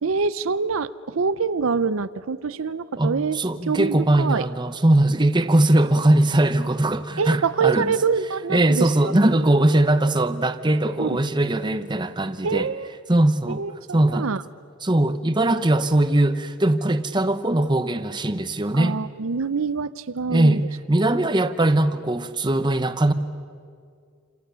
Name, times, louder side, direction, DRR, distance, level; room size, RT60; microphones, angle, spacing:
voice 1, 0.0-3.4 3.7-4.5 7.2-9.1 11.0-11.2 12.4-12.9 13.5-14.4 18.7-20.6, right 5 dB, 75° right, 0.6 m, -25 dB
voice 2, 3.0-7.9 8.5-12.7 13.1-13.6 13.9-14.3 14.8-18.9 20.3-23.1, right 1 dB, 20° right, 1.0 m, -20 dB
28.0 x 28.0 x 6.9 m
head